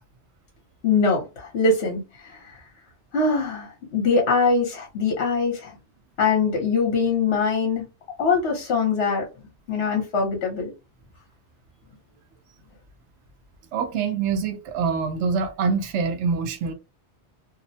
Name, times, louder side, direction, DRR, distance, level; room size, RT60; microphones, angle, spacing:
voice 1, 0.8-2.0 2.3-2.4 3.1-5.7 6.2-7.8 8.2-9.2 9.7-10.7, left 4 dB, 65° left, 1.0 m, -22 dB
voice 2, 13.7-16.7, right 5 dB, 80° right, 0.9 m, -25 dB
2.6 x 2.0 x 2.7 m
omnidirectional pair, 1.2 m